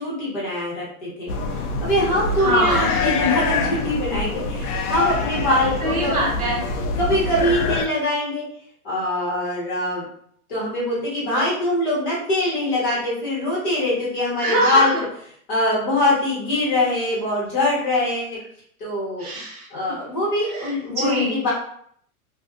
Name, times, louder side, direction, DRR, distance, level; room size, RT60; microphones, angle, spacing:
voice 1, 0.0-1.3 1.8-6.3 7.0-8.5 8.8-10.0 10.5-15.0 15.5-18.4 18.8-19.3 19.7-21.5, left 1 dB, 35° left, -7 dB, 1.1 m, -23 dB
sound 1, 1.3-7.9, left 4 dB, 80° left, 0.6 m, -25 dB
voice 2, 2.4-3.3 5.8-6.6 14.4-15.0 19.2-19.7 20.5-21.5, equal, 25° right, -4 dB, 0.6 m, -23 dB
2.5 x 2.3 x 2.3 m, 0.65 s
supercardioid pair, 175°, 45 cm